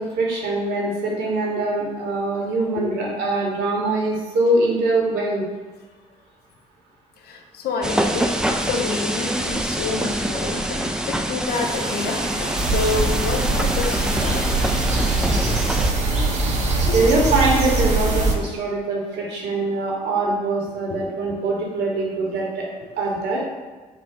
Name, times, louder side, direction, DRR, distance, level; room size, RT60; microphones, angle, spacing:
voice 1, 0.0-5.4 16.9-22.6 23.0-23.4, right 2 dB, 60° right, -2 dB, 1.0 m, -23 dB
voice 2, 7.2-14.7 15.2-15.6 16.9-17.0 20.9-21.0, left 4 dB, 55° left, 2 dB, 0.5 m, -29 dB
sound 1, 7.8-15.9, right 1 dB, 5° right, 0.3 m, -25 dB
sound 2, 11.4-18.3, right 1 dB, 90° right, 0.7 m, -33 dB
sound 3, 12.6-18.3, right 2 dB, 35° right, 0.7 m, -22 dB
3.7 x 2.3 x 3.6 m, 1.3 s
hypercardioid pair, 50°, 19 cm